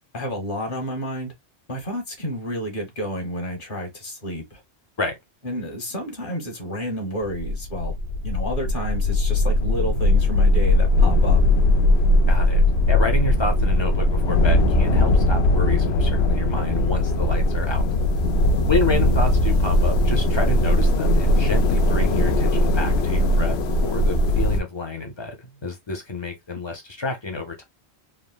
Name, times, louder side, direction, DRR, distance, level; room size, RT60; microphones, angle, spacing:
voice 1, 0.1-1.3 1.7-4.6 5.4-8.0 8.2-11.4 18.9-19.2, equal, 50° left, 1.2 m, -30 dB
sound 1, 7.3-24.6, left 1 dB, 70° left, 0.8 m, -19 dB
voice 2, 12.3-17.9 18.7-23.6 23.8-25.3 25.6-27.6, left 3 dB, 30° left, 0.5 m, -29 dB
3.5 x 2.1 x 2.2 m
omnidirectional pair, 1.1 m